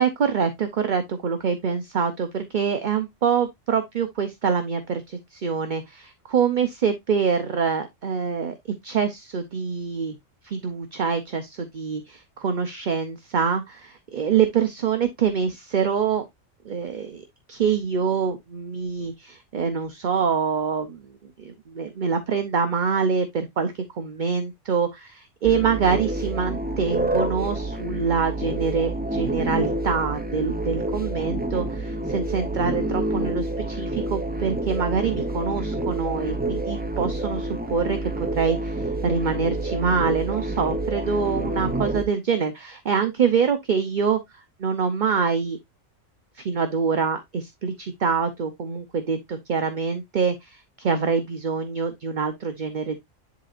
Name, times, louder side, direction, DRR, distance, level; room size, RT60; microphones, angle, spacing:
voice 1, 0.0-8.6 8.8-10.2 10.4-16.2 16.6-17.2 17.5-21.1 21.4-45.6 46.4-53.0, right 6 dB, 45° right, 0.7 m, -25 dB
sound 1, 25.4-42.0, right 1 dB, 10° right, 0.4 m, -28 dB
10.5 x 4.0 x 2.4 m
omnidirectional pair, 1.4 m